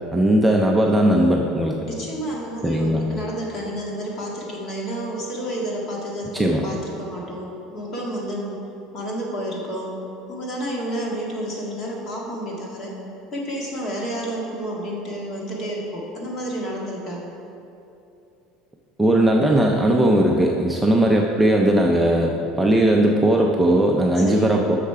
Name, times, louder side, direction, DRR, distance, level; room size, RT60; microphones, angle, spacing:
voice 1, 0.1-1.8 2.6-3.0 6.3-6.6 19.0-24.8, right 1 dB, 5° right, 0 dB, 0.4 m, -18 dB
voice 2, 1.9-8.6 8.9-10.0 10.3-13.0 13.3-17.2 24.2-24.6, right 1 dB, 35° left, -2 dB, 1.7 m, -30 dB
8.4 x 6.4 x 5.7 m, 2.8 s
cardioid pair, 165°, 0 cm